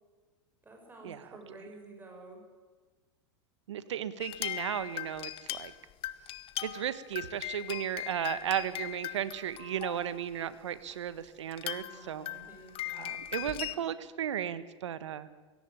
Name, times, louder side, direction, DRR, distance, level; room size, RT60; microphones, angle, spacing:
voice 1, 0.6-2.4 11.8-13.9, right 2 dB, 15° right, 1 dB, 6.5 m, -52 dB
voice 2, 3.7-5.7 6.6-12.3 12.9-15.3, right 10 dB, 85° right, 15 dB, 1.4 m, -35 dB
sound 1, 4.2-10.2 10.9-11.0 11.5-13.7, left 14 dB, 40° left, 1.2 m, -39 dB
18.0 x 17.5 x 9.1 m, 1.4 s
hypercardioid pair, 115°, 15 cm